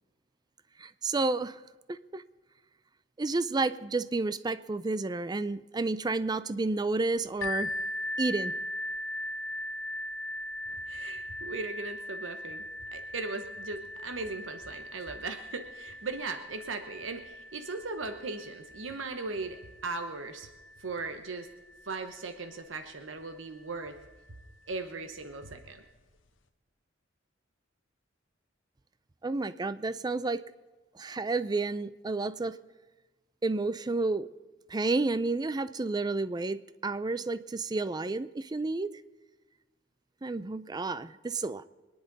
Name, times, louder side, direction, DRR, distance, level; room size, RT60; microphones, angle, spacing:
voice 1, 0.8-1.6 1.9-2.2 3.2-7.7 8.2-8.5 29.2-30.4 31.0-32.6 33.4-34.3 34.7-38.9 40.2-41.6, right 3 dB, 20° right, 15 dB, 0.4 m, -31 dB
sound 1, 7.4-23.0 23.7-23.8 24.4-24.5, left 1 dB, 80° left, 1.1 m, -40 dB
voice 2, 10.7-12.6 12.9-20.5 20.8-21.5 21.9-24.0 24.7-25.8, right 3 dB, 85° right, 7 dB, 1.0 m, -38 dB
24.5 x 10.5 x 4.1 m, 1.2 s
head